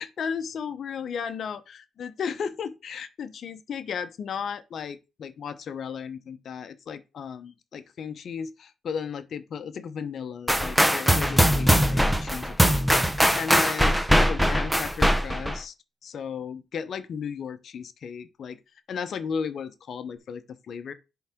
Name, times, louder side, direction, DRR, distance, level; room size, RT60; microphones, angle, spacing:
voice 1, 0.0-12.8 13.3-15.7 16.0-18.6 18.9-20.9, left 6 dB, 60° left, 0.8 m, -35 dB
sound 1, 10.5-15.6, equal, 5° right, 0.8 m, -21 dB
10.5 x 3.9 x 3.6 m
cardioid pair, 90°, 0 cm